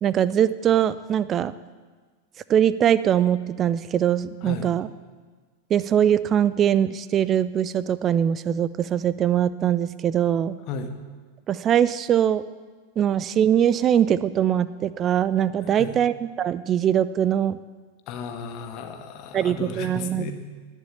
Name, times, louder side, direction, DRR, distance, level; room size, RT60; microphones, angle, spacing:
voice 1, 0.0-1.5 2.5-4.9 5.7-10.6 11.5-12.4 13.0-17.6 19.3-20.3, right 9 dB, 30° right, 17 dB, 0.6 m, -22 dB
voice 2, 4.4-4.7 10.7-10.9 15.6-15.9 18.1-20.3, left 5 dB, 40° left, 6 dB, 1.7 m, -34 dB
19.0 x 7.4 x 8.5 m, 1.5 s
figure-of-eight pair, 90°, 0 cm